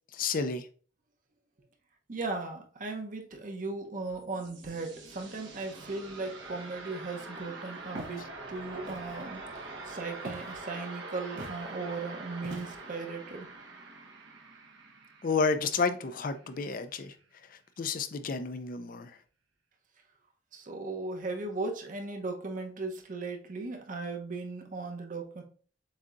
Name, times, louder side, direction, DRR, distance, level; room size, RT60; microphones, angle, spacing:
voice 1, 0.1-0.7 15.2-17.1 17.8-19.1, left 4 dB, 45° left, 0.4 m, -30 dB
voice 2, 2.1-13.5 20.5-25.4, right 3 dB, 45° right, 0.8 m, -37 dB
sound 1, 3.8-16.7, right 3 dB, 70° right, 1.0 m, -45 dB
Walk footsteps, 7.9-8.2 8.8-9.2 10.2-10.6 11.4-11.6 12.4-12.9, right 1 dB, 90° right, 1.3 m, -42 dB
7.3 x 2.8 x 2.4 m
head